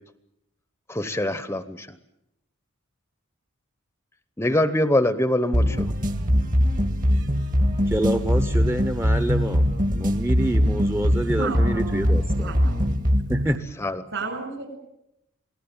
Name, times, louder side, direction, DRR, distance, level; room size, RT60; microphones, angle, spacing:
voice 1, 0.9-1.9 4.4-5.9 13.8-13.9, left 1 dB, 10° left, 12 dB, 0.9 m, -23 dB
sound 1, 5.5-13.6, equal, 40° right, 1.9 m, -22 dB
voice 2, 7.9-9.6 9.9-12.5 13.3-13.6, right 1 dB, 10° right, 9 dB, 1.0 m, -27 dB
voice 3, 11.4-12.7 14.1-14.8, right 4 dB, 60° right, 7 dB, 7.7 m, -32 dB
28.0 x 18.5 x 8.9 m, 0.85 s
head